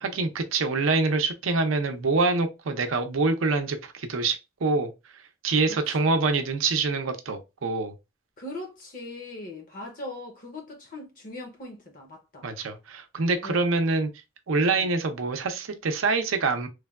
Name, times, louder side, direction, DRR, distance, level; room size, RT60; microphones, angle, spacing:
voice 1, 0.0-4.9 5.4-7.9 12.4-14.1 14.5-16.7, right 3 dB, 80° right, 0.5 m, -25 dB
voice 2, 5.7-6.1 8.4-12.5 13.4-13.6 14.7-14.9, left 1 dB, 40° left, 0.6 m, -40 dB
3.2 x 2.2 x 2.3 m
head